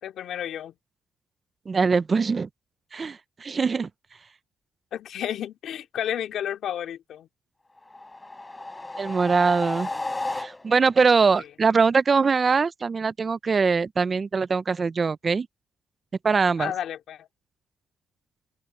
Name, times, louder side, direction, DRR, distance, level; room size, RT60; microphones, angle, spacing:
voice 1, 0.0-0.7 4.9-7.3 16.6-17.3, left 10 dB, 70° left, 2.5 m, -31 dB
voice 2, 1.7-2.5 2.9-3.9 9.0-9.9 10.3-15.5 16.2-16.7, right 5 dB, 35° right, 0.6 m, -22 dB
sound 1, 7.9-11.0, left 2 dB, 15° left, 6.8 m, -33 dB
open air
cardioid pair, 90°, 0 cm